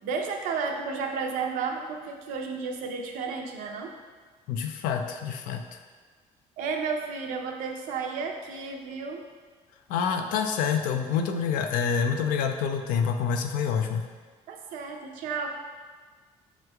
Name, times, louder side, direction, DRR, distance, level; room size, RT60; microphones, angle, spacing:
voice 1, 0.0-3.9 6.6-9.3 14.5-15.5, right 5 dB, 80° right, 2 dB, 0.6 m, -32 dB
voice 2, 4.5-5.8 9.9-14.0, left 6 dB, 85° left, 5 dB, 0.4 m, -27 dB
6.7 x 3.1 x 2.2 m, 1.4 s
cardioid pair, 110°, 14 cm